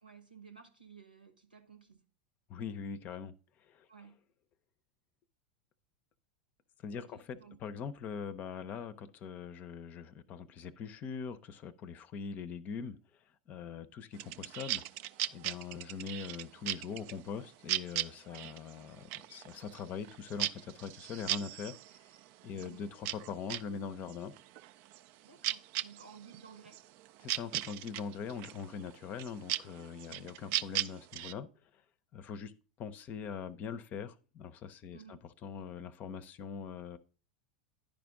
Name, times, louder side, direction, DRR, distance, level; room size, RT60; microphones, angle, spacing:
voice 1, 0.0-2.0 3.9-4.2 6.9-7.6 18.3-18.4 22.5-22.8 25.2-26.8 30.1-30.4 34.9-35.3, right 6 dB, 85° right, 1.1 m, -55 dB
voice 2, 2.5-3.3 3.6-3.9 6.8-13.0 13.5-14.8 15.3-21.8 22.4-24.3 27.2-31.8 32.1-32.5 32.8-37.0, left 6 dB, 35° left, 0.6 m, -42 dB
sound 1, 14.1-23.7 24.0-31.3, right 14 dB, 45° right, 0.3 m, -38 dB
10.5 x 5.1 x 3.6 m
figure-of-eight pair, 85°, 5 cm